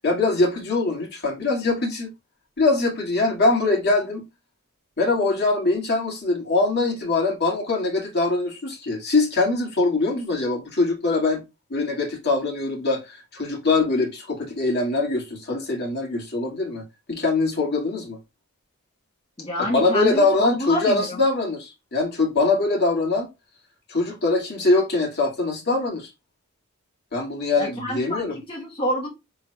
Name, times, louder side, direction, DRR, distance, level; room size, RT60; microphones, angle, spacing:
voice 1, 0.0-2.1 2.6-4.2 5.0-11.4 11.7-18.2 19.6-23.3 23.9-26.1 27.1-28.4, left 3 dB, 55° left, 2.0 m, -23 dB
voice 2, 19.4-21.2 27.6-29.1, left 1 dB, 25° left, 1.2 m, -28 dB
6.2 x 3.8 x 2.2 m
head